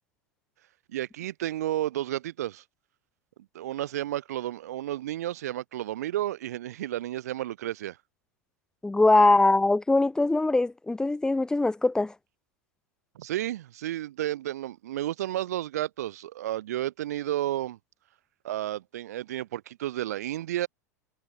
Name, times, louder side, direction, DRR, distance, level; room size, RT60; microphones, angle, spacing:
voice 1, 0.9-2.6 3.5-8.0 13.1-17.8 18.4-20.7, right 13 dB, 65° right, 3.0 m, -32 dB
voice 2, 8.8-12.1, left 2 dB, 5° left, 1.2 m, -22 dB
figure-of-eight pair, 90°, 9 cm